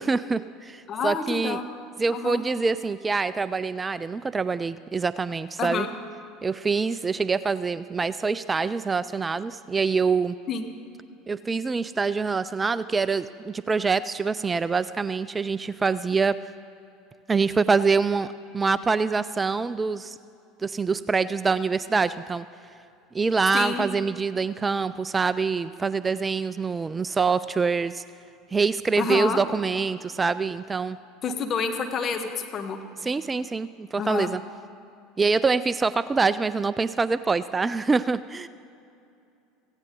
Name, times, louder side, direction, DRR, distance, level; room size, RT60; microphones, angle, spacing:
voice 1, 0.0-1.6 2.0-5.9 6.4-10.4 11.3-16.4 17.3-20.2 20.6-22.5 23.1-28.0 28.5-31.0 33.0-34.4 35.2-38.5, right 4 dB, 20° right, 16 dB, 0.3 m, -25 dB
voice 2, 0.9-1.7 2.1-2.4 5.6-5.9 10.5-10.7 23.5-23.8 29.0-29.4 31.2-32.8 34.0-34.3, left 5 dB, 40° left, 6 dB, 1.4 m, -28 dB
17.0 x 15.5 x 3.8 m, 2.6 s
hypercardioid pair, 75°, 0 cm